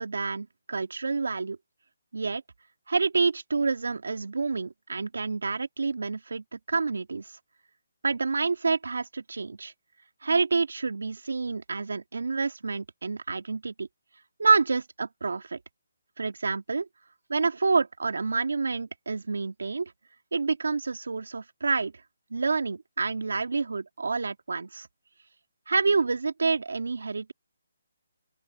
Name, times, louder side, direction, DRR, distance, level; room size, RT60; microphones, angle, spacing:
voice 1, 0.0-1.6 2.1-2.4 2.9-7.3 8.0-9.7 10.2-13.9 14.4-15.6 16.2-16.9 17.3-19.9 20.3-21.9 22.3-24.9 25.7-27.3, right 4 dB, 80° right, 2.6 m, -28 dB
open air
hypercardioid pair, 160°, 0 cm